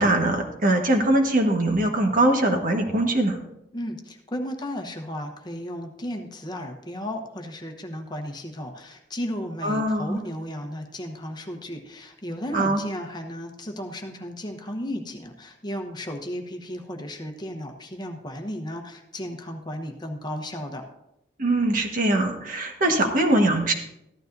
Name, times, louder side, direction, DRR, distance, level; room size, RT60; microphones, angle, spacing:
voice 1, 0.0-3.4 9.6-10.2 12.5-12.8 21.4-23.7, right 1 dB, 50° right, 3 dB, 1.5 m, -22 dB
voice 2, 3.7-20.8, equal, 25° left, 4 dB, 1.0 m, -34 dB
14.5 x 12.0 x 2.7 m, 0.85 s
head